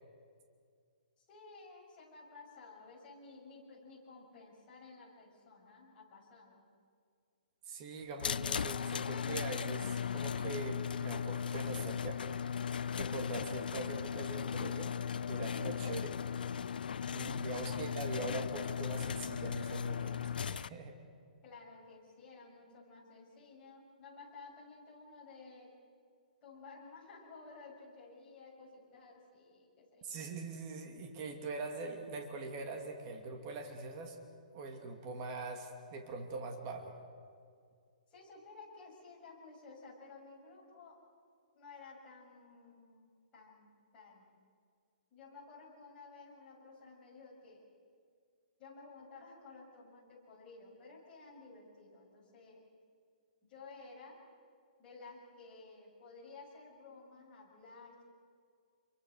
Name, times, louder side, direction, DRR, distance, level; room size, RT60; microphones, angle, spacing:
voice 1, 1.2-6.7 17.7-18.0 21.4-25.8 26.4-30.2 38.1-41.0 41.5-44.3 45.1-47.7 48.6-52.6 53.5-54.2 54.8-58.0, left 3 dB, 20° left, -4 dB, 7.0 m, -54 dB
voice 2, 7.7-12.2 12.9-15.0 15.3-16.2 17.1-21.0 30.0-34.2 34.5-36.9, right 3 dB, 25° right, 3 dB, 2.5 m, -42 dB
sound 1, 8.2-20.7, left 7 dB, 80° left, 0.6 m, -37 dB
28.5 x 23.5 x 6.6 m, 2.2 s
hypercardioid pair, 165°, 5 cm